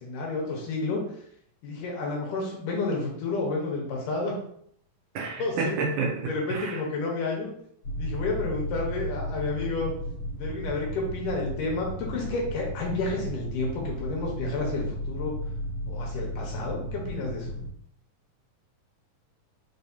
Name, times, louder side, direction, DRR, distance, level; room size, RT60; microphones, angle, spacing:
voice 1, 0.0-1.1 1.6-4.3 5.4-5.8 6.2-7.5 8.0-9.9 10.4-15.3 15.9-17.5, left 3 dB, 75° left, -1 dB, 2.5 m, -30 dB
voice 2, 5.2-6.1 6.5-6.7, right 4 dB, 75° right, 0 dB, 2.3 m, -29 dB
sound 1, 7.8-17.7, equal, 55° left, 2.4 m, -34 dB
5.6 x 3.4 x 2.7 m, 0.68 s
omnidirectional pair, 3.9 m